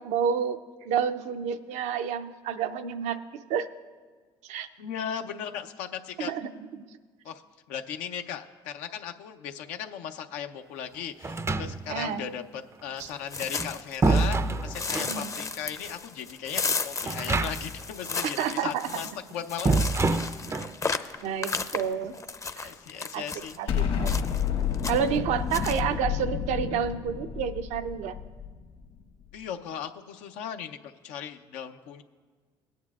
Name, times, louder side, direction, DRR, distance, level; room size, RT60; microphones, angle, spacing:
voice 1, 0.0-3.7 4.4-4.7 6.2-6.8 11.9-12.3 13.0-13.1 15.0-15.3 18.4-18.9 21.2-22.1 22.6-22.7 23.1-23.2 23.6-24.1 24.9-28.2, right 8 dB, 70° right, 10 dB, 0.6 m, -30 dB
voice 2, 4.8-6.3 7.2-7.4 7.7-19.7 22.6-24.0 29.3-32.0, left 8 dB, 80° left, 7 dB, 0.6 m, -37 dB
sound 1, 11.2-12.1 13.4-15.2 17.0-17.9 18.1-18.2 19.6-20.8, right 3 dB, 20° right, 0.4 m, -26 dB
sound 2, 13.0-14.4 14.7-23.6 24.0-24.5 24.7-25.2 25.5-25.8, left 4 dB, 25° left, 0.6 m, -34 dB
Explosion, 23.7-28.8, left 8 dB, 60° left, 1.4 m, -30 dB
18.5 x 9.3 x 2.4 m, 1.5 s
hypercardioid pair, 60°, 12 cm